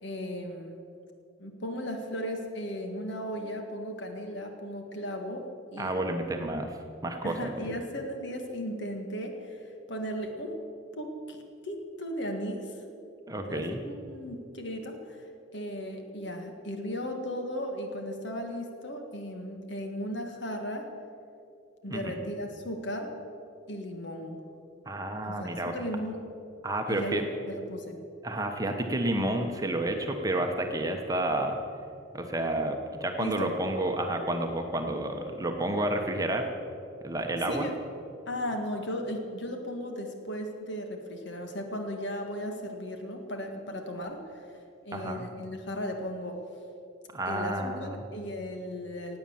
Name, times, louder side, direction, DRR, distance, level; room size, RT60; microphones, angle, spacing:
voice 1, 0.0-0.9 1.4-5.9 7.2-9.6 9.9-10.6 10.9-12.8 13.5-15.2 15.5-20.9 21.8-23.2 23.7-24.4 25.2-26.2 26.9-28.0 33.2-33.5 37.5-37.8 38.3-44.4 44.8-46.4 47.3-49.2, equal, 60° left, 4 dB, 1.8 m, -36 dB
voice 2, 5.8-6.8 7.0-7.7 13.3-13.8 21.9-22.2 24.9-25.7 26.6-27.2 28.2-31.6 32.1-36.5 37.0-37.7 44.9-45.2 47.1-48.0, right 1 dB, 15° right, 4 dB, 1.0 m, -30 dB
17.0 x 8.8 x 7.2 m, 2.6 s
head